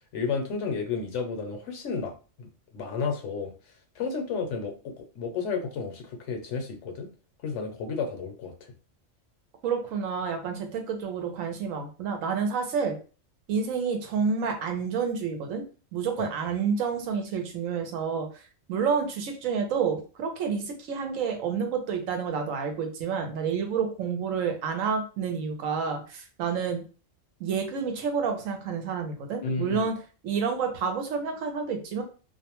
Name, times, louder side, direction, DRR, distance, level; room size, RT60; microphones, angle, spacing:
voice 1, 0.1-2.1 2.4-2.5 2.7-3.5 4.0-7.1 7.4-8.7 16.2-16.3 29.4-29.9, left 5 dB, 70° left, 5 dB, 0.9 m, -32 dB
voice 2, 9.6-13.0 13.5-15.6 15.9-18.3 18.7-26.8 27.4-30.0 30.2-32.0, right 6 dB, 90° right, 4 dB, 1.1 m, -29 dB
2.5 x 2.1 x 2.9 m, 0.35 s
omnidirectional pair, 1.3 m